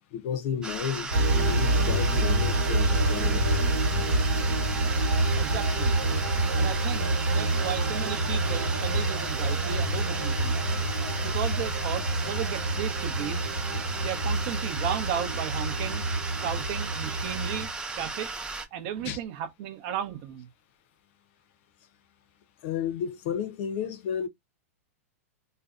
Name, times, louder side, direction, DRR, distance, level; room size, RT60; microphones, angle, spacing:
voice 1, 0.1-3.8 19.0-19.2 22.6-24.3, left 8 dB, 55° left, 0.6 m, -33 dB
sound 1, 0.6-18.6, right 3 dB, 10° right, 0.4 m, -36 dB
sound 2, 1.1-17.7, right 2 dB, 85° right, 1.2 m, -27 dB
sound 3, 5.4-13.1, left 6 dB, 85° left, 0.8 m, -48 dB
voice 2, 5.4-5.9 6.6-10.6 11.2-13.5 14.0-18.3 18.7-20.5, right 9 dB, 50° right, 0.6 m, -35 dB
2.6 x 2.1 x 2.4 m
hypercardioid pair, 120°, 8 cm